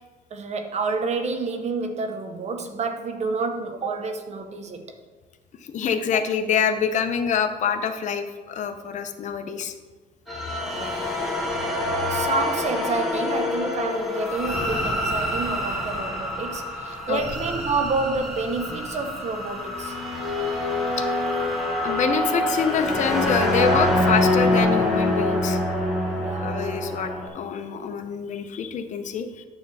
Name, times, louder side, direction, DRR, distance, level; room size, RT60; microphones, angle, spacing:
voice 1, 0.3-4.9 10.7-11.0 12.1-20.0 26.2-26.5, right 4 dB, 40° right, 6 dB, 0.8 m, -29 dB
voice 2, 5.7-9.7 17.1-17.2 21.8-25.6 26.4-29.5, left 6 dB, 45° left, 7 dB, 0.7 m, -26 dB
sound 1, 10.3-27.3, left 1 dB, ahead, 1.7 m, -25 dB
9.2 x 3.4 x 6.8 m, 1.3 s
cardioid pair, 110°, 17 cm